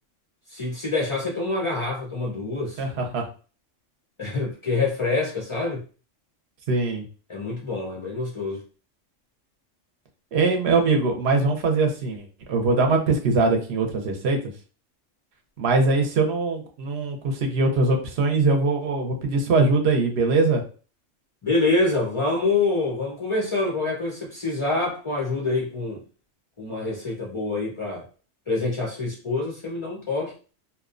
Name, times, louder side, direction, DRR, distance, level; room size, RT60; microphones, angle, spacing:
voice 1, 0.5-2.8 4.2-5.8 7.3-8.6 21.4-26.0 26.6-28.0 28.5-30.3, left 3 dB, 50° left, 0.3 m, -26 dB
voice 2, 2.8-3.2 6.7-7.0 10.3-14.4 15.6-20.6, right 3 dB, 60° right, 0.8 m, -22 dB
2.7 x 2.1 x 2.4 m
omnidirectional pair, 1.3 m